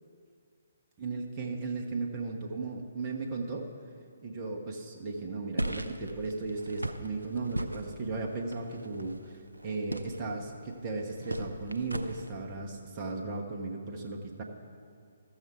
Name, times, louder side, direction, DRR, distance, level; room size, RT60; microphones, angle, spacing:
voice 1, 1.0-3.7 4.2-9.2 9.6-14.4, right 3 dB, 25° right, 0 dB, 1.0 m, -36 dB
sound 1, 5.6-12.3, right 1 dB, 80° right, 0.5 m, -39 dB
13.5 x 6.7 x 4.5 m, 2.3 s
figure-of-eight pair, 135°, 0 cm